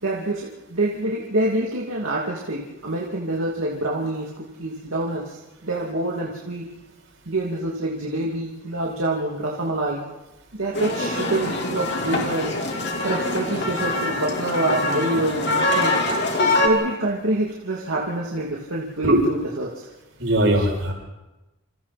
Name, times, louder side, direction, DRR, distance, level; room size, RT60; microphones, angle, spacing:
voice 1, 0.0-6.7 7.3-10.0 10.5-12.5 13.0-16.0 16.6-19.9 20.5-20.6, right 1 dB, 90° right, -3 dB, 2.7 m, -26 dB
sound 1, 10.7-16.7, left 2 dB, 55° left, 3.4 m, -24 dB
voice 2, 20.2-20.9, right 1 dB, 65° right, -1 dB, 7.2 m, -20 dB
29.0 x 27.0 x 4.3 m, 1.1 s
head